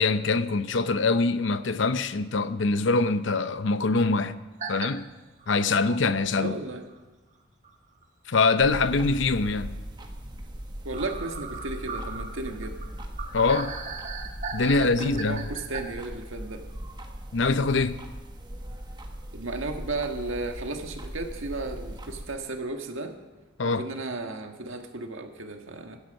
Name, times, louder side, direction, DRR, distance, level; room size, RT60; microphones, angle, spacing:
voice 1, 0.0-4.4 4.7-5.1 5.5-6.5 8.3-9.8 13.3-13.7 14.5-15.4 17.3-18.0 23.6-23.8, left 3 dB, 65° left, 0.7 m, -24 dB
sound 1, 4.6-4.9 5.4-5.5 6.9-7.0 7.6-7.7 8.0-8.1 10.9-15.8, right 5 dB, 40° right, 1.4 m, -37 dB
voice 2, 6.3-6.8 10.9-12.7 14.8-16.6 19.3-23.2 23.6-26.0, right 2 dB, 85° right, 1.6 m, -34 dB
sound 2, 8.6-22.3, equal, 20° right, 1.3 m, -39 dB
16.5 x 12.5 x 5.3 m
head